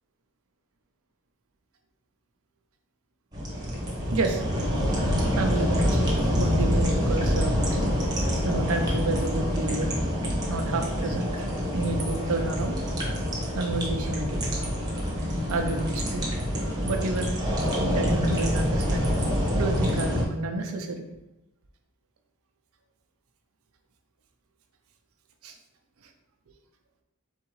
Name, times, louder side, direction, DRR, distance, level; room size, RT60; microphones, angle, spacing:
sound 1, 3.3-20.2, equal, 20° right, 1.0 m, -26 dB
voice 1, 4.1-4.4 4.8-4.9 5.3-6.0 6.4-7.6 8.4-9.9 10.5-12.8 13.5-14.5 15.5-16.2 16.8-19.2 19.5-21.1 25.4-25.5, right 2 dB, 80° right, 5 dB, 0.6 m, -30 dB
4.1 x 3.7 x 3.1 m, 0.98 s
head